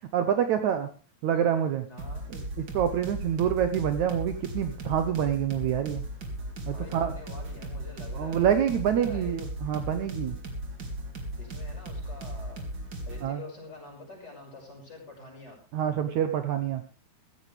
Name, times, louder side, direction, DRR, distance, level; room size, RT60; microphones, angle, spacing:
voice 1, 0.1-0.9 1.2-1.8 2.3-6.0 6.7-7.1 8.1-10.4 13.2-13.4 15.7-16.8, right 9 dB, 85° right, 8 dB, 1.6 m, -27 dB
voice 2, 1.8-2.2 6.7-9.4 11.4-12.6 13.0-15.6, left 2 dB, 25° left, -1 dB, 6.4 m, -46 dB
sound 1, 2.0-13.3, right 1 dB, 35° right, 2.2 m, -37 dB
16.0 x 15.0 x 3.4 m, 0.33 s
omnidirectional pair, 4.8 m